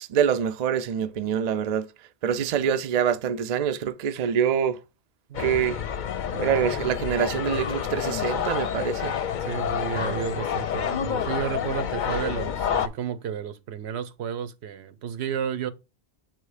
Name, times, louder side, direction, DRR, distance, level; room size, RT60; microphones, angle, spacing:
voice 1, 0.0-1.9 2.2-4.8 5.4-5.8 6.4-9.1, right 8 dB, 55° right, 0.5 m, -25 dB
sound 1, 5.3-12.9, left 8 dB, 55° left, 0.6 m, -28 dB
voice 2, 5.3-5.7 6.3-6.7 9.4-15.7, right 8 dB, 80° right, 0.9 m, -32 dB
7.4 x 3.0 x 4.8 m
omnidirectional pair, 1.1 m